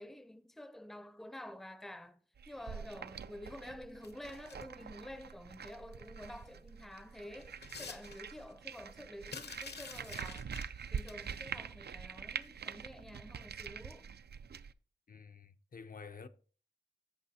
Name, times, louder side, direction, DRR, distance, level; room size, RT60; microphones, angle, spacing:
voice 1, 0.0-2.2 2.5-10.5 10.9-14.1, left 1 dB, ahead, 0.5 m, -49 dB
sound 1, 2.4-14.7, right 7 dB, 75° right, 0.4 m, -45 dB
sound 2, 4.0-4.8 6.4-6.5 6.9-8.5 9.3-11.4 12.4-12.6 12.9-13.0, left 4 dB, 75° left, 0.9 m, -49 dB
voice 2, 15.1-16.3, left 5 dB, 55° left, 0.5 m, -50 dB
14.5 x 5.4 x 2.8 m
wide cardioid pair, 80°, 17 cm